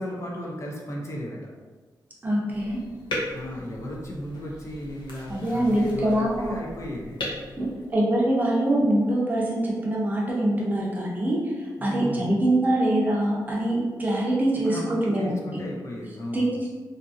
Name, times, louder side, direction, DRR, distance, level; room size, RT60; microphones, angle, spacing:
voice 1, 0.0-1.4 3.3-7.2 11.8-12.4 14.5-16.7, equal, 40° left, -2 dB, 0.5 m, -35 dB
voice 2, 2.2-2.8 5.3-6.5 7.6-15.6 16.3-16.7, right 1 dB, 25° right, -4 dB, 0.6 m, -24 dB
sound 1, 2.5-8.4, left 1 dB, 85° left, 0.7 m, -38 dB
2.7 x 2.5 x 2.5 m, 1.3 s
wide cardioid pair, 160°, 8 cm